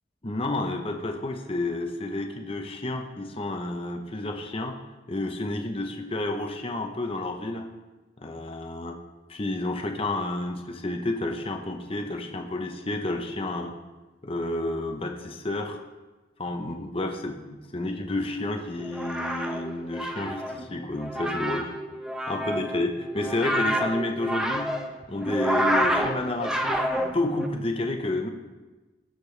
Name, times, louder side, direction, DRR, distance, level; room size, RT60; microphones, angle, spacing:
voice 1, 0.2-4.8 5.1-7.6 8.2-9.0 9.3-13.7 14.2-15.8 16.4-21.7 22.3-24.7 25.1-28.3, left 2 dB, 30° left, 4 dB, 0.8 m, -30 dB
sound 1, 18.8-27.5, equal, 5° right, 0.7 m, -28 dB
18.5 x 6.8 x 3.3 m, 1.2 s
head